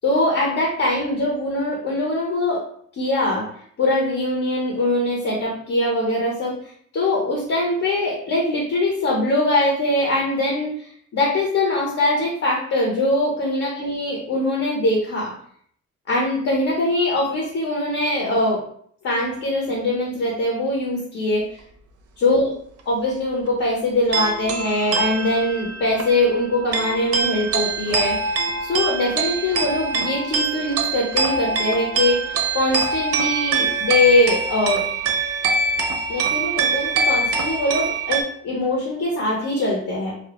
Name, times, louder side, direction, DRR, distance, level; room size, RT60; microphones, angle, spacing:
voice 1, 0.0-2.6 2.9-3.5 3.8-6.6 6.9-15.3 16.1-18.6 19.0-21.5 22.2-22.4 22.9-28.2 28.6-34.8 36.1-40.1, left 1 dB, 55° left, -2 dB, 0.7 m, -22 dB
sound 1, 24.1-38.2, right 4 dB, 55° right, 0.4 m, -24 dB
2.1 x 2.0 x 2.8 m, 0.62 s
cardioid pair, 90°, 30 cm